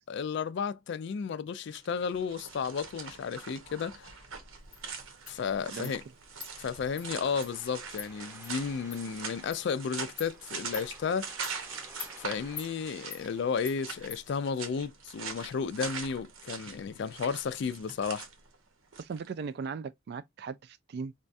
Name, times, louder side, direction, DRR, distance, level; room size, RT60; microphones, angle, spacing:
voice 1, 0.1-4.1 5.3-6.0 6.6-11.3 12.2-18.3, left 6 dB, 60° left, 0.3 m, -33 dB
sound 1, 1.6-19.3, right 5 dB, 90° right, 0.8 m, -43 dB
Insect, 4.7-4.8 5.3-5.4 5.8-6.0 6.4-6.5 7.0-7.1 7.4-7.5 8.0-8.1 8.4-8.5 8.9-9.0 9.5-9.6 10.2-10.3 10.7-10.9 11.4-11.6 12.0-12.1 12.6-12.7 13.1-13.2 13.7-13.8 14.1-14.2, left 6 dB, 25° left, 0.7 m, -42 dB
sound 2, 6.8-13.5, right 1 dB, 15° right, 0.8 m, -53 dB
voice 2, 19.0-21.2, right 5 dB, 55° right, 0.3 m, -38 dB
4.1 x 2.3 x 2.5 m
head